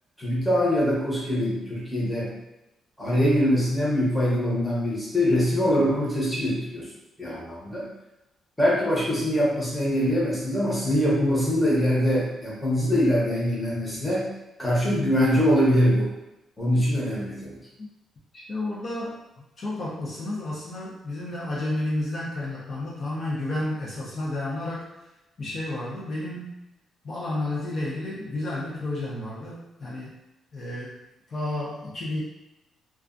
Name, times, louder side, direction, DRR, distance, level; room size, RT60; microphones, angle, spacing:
voice 1, 0.2-2.4 3.0-6.9 7.2-7.9 8.6-14.3 14.6-16.1 16.6-17.6, equal, 5° left, -7 dB, 0.8 m, -23 dB
voice 2, 18.3-19.2 19.6-24.9 25.4-26.5 27.0-30.2 30.5-31.0 31.3-32.2, left 1 dB, 40° left, -6 dB, 0.5 m, -31 dB
2.3 x 2.2 x 2.4 m, 0.95 s
cardioid pair, 145°, 0 cm